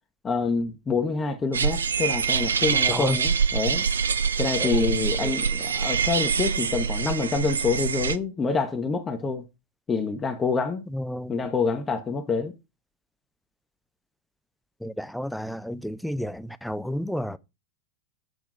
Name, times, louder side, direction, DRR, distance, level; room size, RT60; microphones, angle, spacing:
voice 1, 0.2-3.9 4.4-9.4 9.9-10.8 11.3-12.5, left 4 dB, 20° left, 0.9 m, -27 dB
sound 1, 1.5-8.2, right 6 dB, 70° right, 0.5 m, -25 dB
voice 2, 4.6-5.4 10.9-11.3 14.8-17.4, equal, ahead, 0.5 m, -31 dB
7.9 x 3.4 x 6.3 m
figure-of-eight pair, 90°, 0 cm